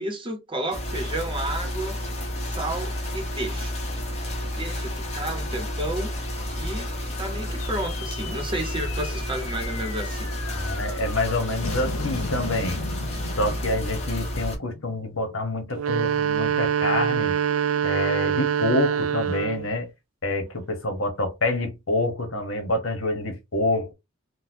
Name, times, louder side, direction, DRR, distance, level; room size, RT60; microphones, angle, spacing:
voice 1, 0.0-2.0 2.4-3.7 4.4-6.1 6.6-6.9 7.2-10.3, right 1 dB, 25° right, 0.9 m, -32 dB
sound 1, 0.7-14.6, left 1 dB, 30° left, 0.9 m, -31 dB
sound 2, 7.6-16.2, left 3 dB, 85° left, 0.8 m, -38 dB
voice 2, 10.5-12.8 13.4-17.3 17.8-19.9 20.2-23.9, left 2 dB, 65° left, 1.1 m, -27 dB
sound 3, 15.7-19.7, right 8 dB, 75° right, 0.4 m, -24 dB
3.9 x 2.2 x 2.7 m
head